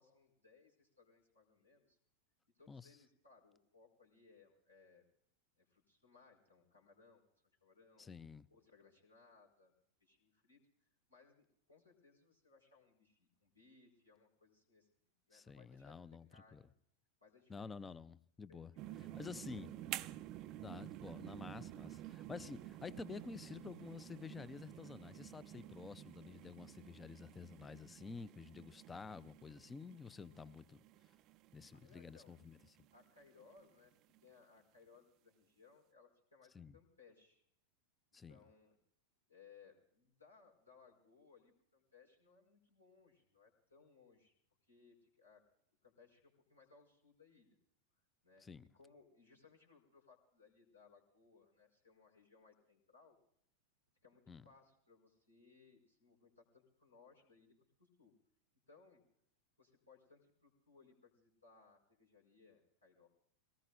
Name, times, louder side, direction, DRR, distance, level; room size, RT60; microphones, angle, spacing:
voice 1, 0.0-2.0 2.6-5.0 5.6-7.2 7.6-8.1 8.5-9.7 10.0-14.9 15.3-15.9 16.3-16.7 17.2-17.8 18.5-20.0 31.7-32.4 32.9-33.9 34.2-37.4 38.3-38.8 39.3-44.3 44.6-45.4 45.8-47.6 48.2-48.5 48.7-53.2 54.0-58.1 58.7-59.0 59.6-63.1, left 4 dB, 85° left, 4.6 m, -66 dB
voice 2, 8.0-8.5 15.3-16.6 17.5-18.7 19.1-19.7 20.6-30.8 31.5-32.6 36.5-36.8 38.1-38.4 48.4-48.6 54.3-54.4, left 5 dB, 15° left, 0.6 m, -50 dB
sound 1, 18.8-33.7 34.1-34.3, right 14 dB, 40° right, 0.5 m, -51 dB
23.0 x 18.5 x 2.6 m
figure-of-eight pair, 90°, 0 cm